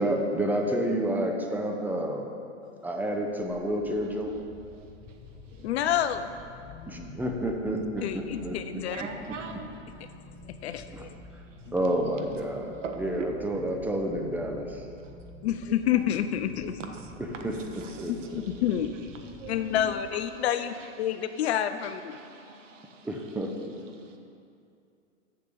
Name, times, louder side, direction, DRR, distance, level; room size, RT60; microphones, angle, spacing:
voice 1, 0.0-2.3 2.8-4.4 6.9-8.6 9.0-9.1 10.9-11.0 11.7-14.8 17.4-17.5 18.0-18.4 23.0-23.5, right 1 dB, 5° right, 2 dB, 0.4 m, -29 dB
voice 2, 2.6-2.9 5.6-6.3 8.0-9.0 10.5-11.1 11.7-11.8 15.4-16.8 18.1-19.1 19.5-22.2, left 10 dB, 55° left, 10 dB, 0.5 m, -29 dB
sound 1, 3.2-20.5, left 2 dB, 15° left, 0.8 m, -48 dB
voice 3, 4.0-5.2 5.5-5.9 8.0-8.4 8.8-9.7 11.5-11.6 12.8-13.3 15.0-15.2 16.9-18.6 19.1-19.9 20.3-21.5 21.8-23.5 23.9-24.2, right 4 dB, 75° right, 3 dB, 1.3 m, -44 dB
6.9 x 6.7 x 6.7 m, 2.5 s
hypercardioid pair, 115°, 38 cm